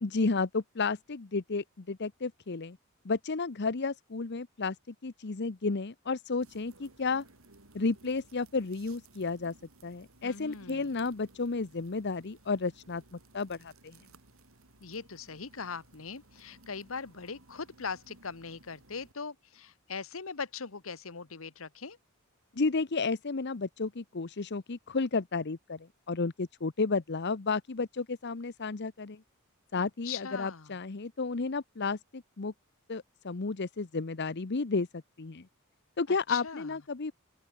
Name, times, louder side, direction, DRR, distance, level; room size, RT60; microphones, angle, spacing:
voice 1, 0.0-2.8 3.0-7.2 7.7-9.5 9.8-14.0 22.6-29.2 29.7-32.5 32.9-35.5 36.0-37.1, left 4 dB, 55° left, 0.8 m, -32 dB
sound 1, 6.4-19.1, right 2 dB, 80° right, 4.7 m, -59 dB
voice 2, 10.2-11.0 14.8-22.0 29.7-30.7 36.1-36.7, left 5 dB, 70° left, 1.3 m, -41 dB
open air
head